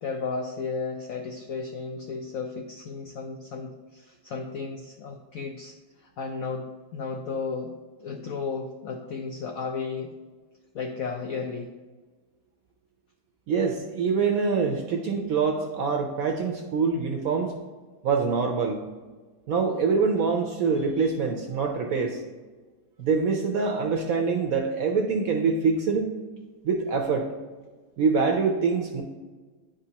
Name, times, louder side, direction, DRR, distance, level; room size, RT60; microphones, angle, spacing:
voice 1, 0.0-7.7 8.0-10.1 10.7-11.7, left 4 dB, 80° left, 3 dB, 0.7 m, -34 dB
voice 2, 13.5-17.5 18.0-18.8 19.5-22.2 23.0-26.1 26.6-27.3 28.0-29.0, right 5 dB, 65° right, 2 dB, 0.8 m, -25 dB
9.6 x 5.1 x 2.8 m, 1.3 s
omnidirectional pair, 2.1 m